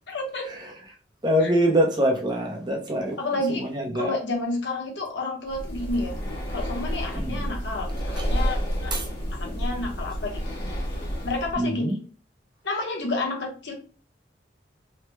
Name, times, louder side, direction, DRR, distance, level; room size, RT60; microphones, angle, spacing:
voice 1, 0.1-0.5 1.4-1.5 3.2-3.7 3.9-6.2 6.5-8.9 9.4-10.4 11.2-12.0 12.6-13.7, left 2 dB, 80° left, 0.9 m, -30 dB
voice 2, 1.2-3.2 3.5-4.1 7.1-7.4 8.2-8.3 8.9-9.1 11.6-11.9, equal, 25° right, 0.6 m, -24 dB
Breathing, 5.5-11.6, equal, 60° left, 1.4 m, -30 dB
3.2 x 2.1 x 3.0 m
head